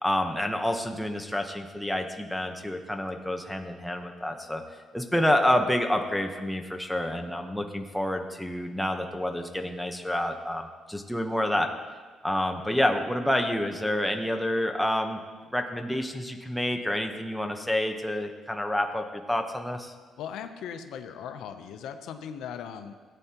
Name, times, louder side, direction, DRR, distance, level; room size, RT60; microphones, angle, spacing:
voice 1, 0.0-4.6 4.9-11.7 12.2-15.2 15.5-19.9, left 1 dB, ahead, 3 dB, 1.0 m, -28 dB
voice 2, 20.2-22.9, left 8 dB, 85° left, 7 dB, 0.7 m, -38 dB
16.5 x 9.1 x 3.0 m, 1.5 s
cardioid pair, 90°, 0 cm